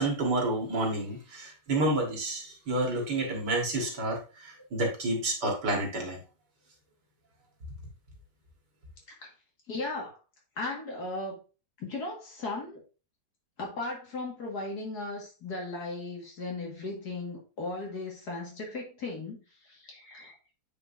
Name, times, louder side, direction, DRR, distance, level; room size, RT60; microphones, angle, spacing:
voice 1, 0.0-6.2, right 2 dB, 65° right, 0 dB, 2.2 m, -29 dB
voice 2, 9.7-10.2 10.6-11.4 11.8-12.8 13.6-20.3, left 2 dB, 60° left, -1 dB, 2.3 m, -37 dB
8.7 x 4.6 x 2.6 m, 0.34 s
omnidirectional pair, 2.0 m